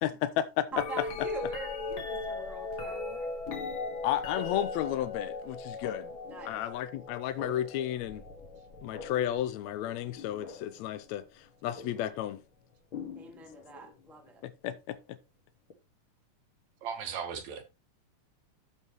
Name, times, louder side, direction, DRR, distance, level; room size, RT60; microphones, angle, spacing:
voice 1, 0.0-0.8 4.0-6.1 6.4-8.2 8.8-12.4 14.4-15.0, left 12 dB, 85° left, 1.6 m, -33 dB
sound 1, 0.7-10.8 11.8-12.2 12.9-13.9 15.7-15.8, left 3 dB, 45° left, 1.9 m, -39 dB
voice 2, 0.7-3.3 6.3-6.6 13.2-14.4, right 2 dB, ahead, 0.8 m, -43 dB
voice 3, 16.8-17.6, right 7 dB, 65° right, 2.4 m, -37 dB
13.5 x 5.7 x 3.0 m
omnidirectional pair, 3.8 m